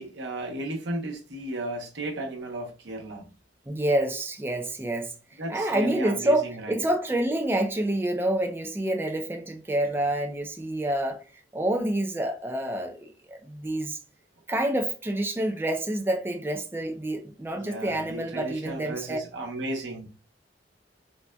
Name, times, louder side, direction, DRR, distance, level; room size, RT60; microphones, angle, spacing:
voice 1, 0.0-3.3 5.4-6.8 17.5-20.1, right 1 dB, 85° right, 0.8 m, -34 dB
voice 2, 3.7-5.1 5.5-11.2 11.5-14.0 14.5-19.2, right 1 dB, 15° right, 0.4 m, -28 dB
3.9 x 2.2 x 2.2 m
head